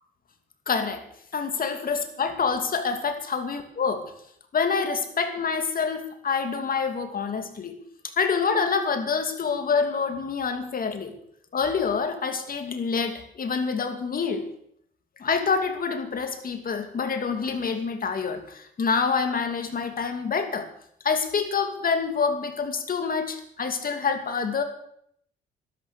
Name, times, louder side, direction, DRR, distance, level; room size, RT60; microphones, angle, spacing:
voice 1, 0.7-1.0 1.3-4.0 4.5-7.8 8.2-11.1 11.5-14.4 15.2-20.7 21.0-24.6, left 5 dB, 45° left, 7 dB, 2.6 m, -27 dB
13.0 x 12.5 x 6.8 m, 0.68 s
cardioid pair, 90°, 20 cm